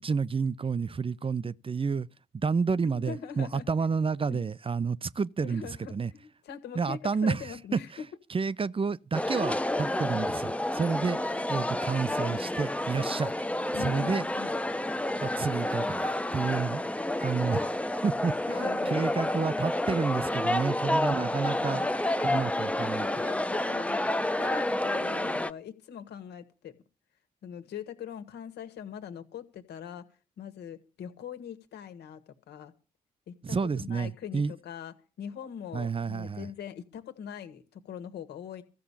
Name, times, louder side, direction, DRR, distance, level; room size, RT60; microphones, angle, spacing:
voice 1, 0.0-2.1 2.3-6.1 6.7-7.8 8.3-11.2 11.5-13.3 13.8-14.3 15.2-16.9 17.2-17.7 18.0-21.8 22.2-23.1 33.4-34.5 35.7-36.5, right 5 dB, 30° right, 0.7 m, -30 dB
voice 2, 2.8-3.7 4.0-4.5 5.4-8.1 11.1-11.4 13.7-14.6 18.5-19.1 21.6-22.5 22.8-26.8 27.4-30.0 30.4-32.7 33.3-38.6, left 8 dB, 70° left, 1.8 m, -42 dB
sound 1, 9.1-25.5, left 1 dB, 5° left, 0.9 m, -29 dB
14.5 x 6.8 x 8.8 m
hypercardioid pair, 40°, 18 cm